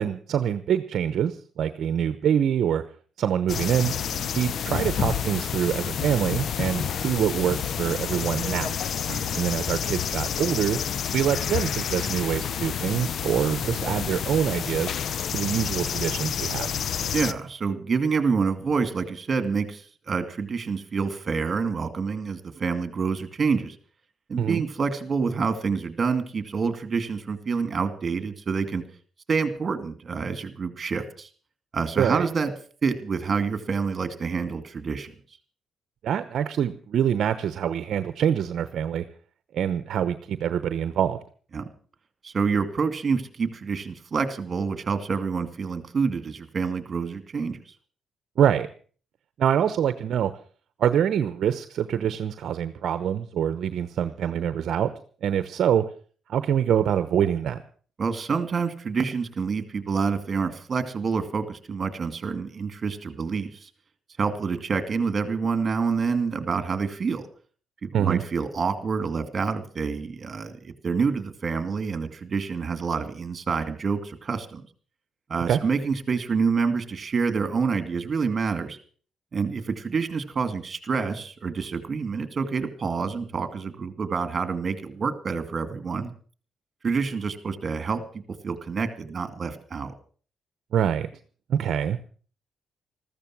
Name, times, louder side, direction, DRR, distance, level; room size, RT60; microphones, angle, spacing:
voice 1, 0.0-2.8 3.2-3.9 4.3-8.7 9.4-10.8 11.1-15.0 15.3-16.7 24.4-24.6 32.0-32.3 36.0-39.0 39.5-41.2 48.4-48.7 49.4-50.3 50.8-54.9 55.2-55.8 56.3-57.6 67.9-68.2 75.5-75.6 90.7-91.1 91.5-92.0, right 9 dB, 65° right, 11 dB, 0.9 m, -25 dB
sound 1, 3.5-17.3, left 8 dB, 60° left, 0.7 m, -29 dB
voice 2, 17.1-23.8 24.3-28.8 29.3-31.3 31.7-32.5 32.8-35.1 41.5-41.7 42.2-47.6 58.0-63.7 64.2-67.3 67.8-74.6 75.3-78.8 79.3-86.1 86.8-88.0 88.4-89.9, right 5 dB, 40° right, 10 dB, 2.4 m, -27 dB
14.5 x 14.0 x 6.1 m, 0.43 s
cardioid pair, 90°, 0 cm